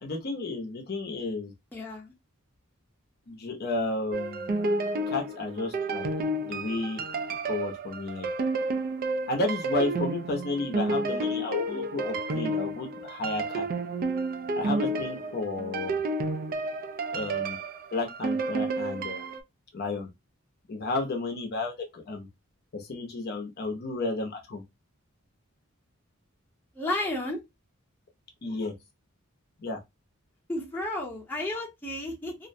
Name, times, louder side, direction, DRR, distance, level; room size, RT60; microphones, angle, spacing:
voice 1, 0.0-1.5 3.3-4.5 5.1-6.1 6.4-7.0 7.5-8.3 9.3-13.7 14.6-16.0 17.1-17.6 17.9-19.3 19.7-20.1 20.7-22.3 22.7-24.6 28.4-28.7 29.6-29.8, left 2 dB, 50° left, 0.6 m, -32 dB
voice 2, 1.7-2.1 26.7-27.4 30.5-32.5, left 1 dB, 10° left, 0.7 m, -32 dB
sound 1, 4.1-19.4, right 2 dB, 45° right, 0.3 m, -31 dB
2.4 x 2.0 x 2.5 m
head